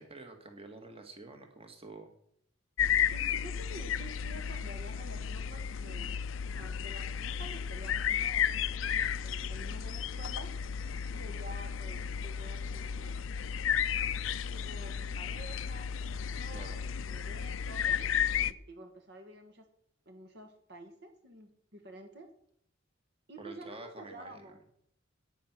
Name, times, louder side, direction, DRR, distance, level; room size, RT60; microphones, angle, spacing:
voice 1, 0.0-2.1 16.5-16.8 23.4-24.4, right 2 dB, 30° right, 5 dB, 1.9 m, -48 dB
sound 1, 2.8-18.5, left 8 dB, 75° left, 0.5 m, -33 dB
voice 2, 3.1-6.1 6.5-10.5 11.1-13.2 14.5-18.0 18.5-19.7 20.0-22.3 23.3-24.6, right 1 dB, 55° right, 5 dB, 1.6 m, -50 dB
11.0 x 9.3 x 6.1 m, 0.70 s
head